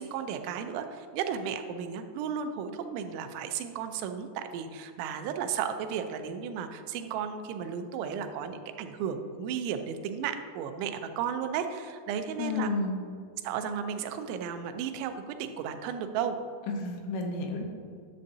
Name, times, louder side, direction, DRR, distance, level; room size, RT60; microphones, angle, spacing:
voice 1, 0.0-12.7 13.4-16.4, right 7 dB, 85° right, 7 dB, 3.0 m, -34 dB
voice 2, 12.4-13.0 16.7-17.6, left 3 dB, 80° left, 2 dB, 3.3 m, -31 dB
11.0 x 7.5 x 2.7 m, 2.2 s
omnidirectional pair, 5.3 m